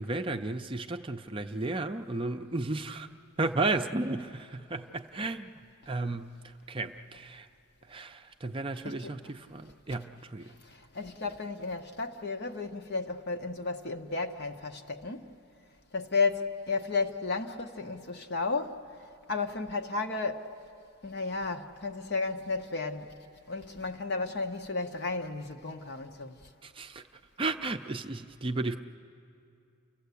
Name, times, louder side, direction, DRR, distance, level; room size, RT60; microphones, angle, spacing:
voice 1, 0.0-3.1 3.4-5.5 5.9-6.4 6.7-7.5 7.9-10.5 26.6-27.0 27.4-28.8, right 2 dB, 25° right, 0.5 m, -33 dB
voice 2, 8.8-9.2 10.6-15.3 15.9-18.8 19.3-20.5 21.0-23.1 23.5-26.3, left 4 dB, 50° left, 1.0 m, -33 dB
29.5 x 15.0 x 8.3 m
head